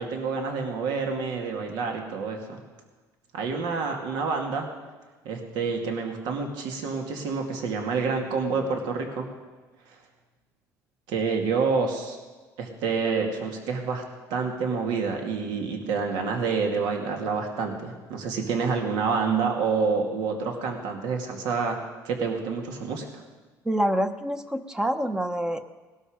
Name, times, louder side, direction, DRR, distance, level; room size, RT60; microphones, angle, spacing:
voice 1, 0.0-2.6 3.3-4.7 5.2-9.3 11.1-12.2 12.6-14.0 14.3-21.8 22.0-23.2, right 5 dB, 75° right, 3 dB, 2.4 m, -28 dB
voice 2, 23.6-25.6, equal, 10° right, 9 dB, 0.8 m, -26 dB
19.0 x 12.5 x 5.1 m, 1.3 s
cardioid pair, 135°, 7 cm